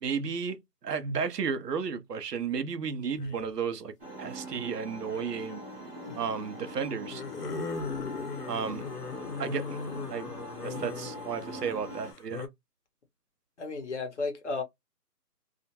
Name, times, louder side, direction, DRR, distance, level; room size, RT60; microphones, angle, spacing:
voice 1, 0.0-3.9 4.2-5.6 6.2-7.2 8.5-8.9 9.4-9.8 10.1-10.3 10.6-12.5, right 6 dB, 80° right, 0.7 m, -33 dB
sound 1, 3.1-3.5 5.1-5.6 7.0-12.5, left 5 dB, 75° left, 0.8 m, -38 dB
sound 2, 4.0-12.1, right 1 dB, 35° right, 0.8 m, -43 dB
voice 2, 13.6-14.6, left 3 dB, 45° left, 0.8 m, -34 dB
2.4 x 2.1 x 2.7 m
hypercardioid pair, 170°, 47 cm